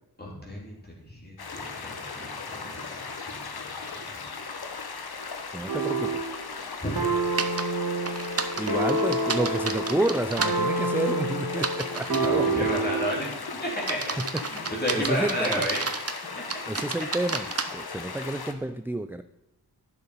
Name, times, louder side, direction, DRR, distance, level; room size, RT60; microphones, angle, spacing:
voice 1, 0.2-0.8 1.1-3.8 4.1-4.2 6.8-6.9 12.1-14.2 14.5-15.8 16.3-16.6, equal, 25° left, -4 dB, 2.9 m, -32 dB
sound 1, 1.4-18.5, left 4 dB, 70° left, 1.1 m, -38 dB
voice 2, 5.5-6.2 8.6-12.5 14.2-14.4 14.9-15.7 16.7-19.2, right 1 dB, 5° right, 11 dB, 0.3 m, -30 dB
sound 2, 5.7-6.3 7.0-13.2, right 2 dB, 65° right, 1.7 m, -28 dB
sound 3, 7.4-7.6 8.0-10.5 11.5-12.4 12.9-13.2 13.8-16.2 16.5-17.6, right 4 dB, 40° right, 0.8 m, -31 dB
10.5 x 6.9 x 5.4 m, 1.0 s
wide cardioid pair, 85°, 39 cm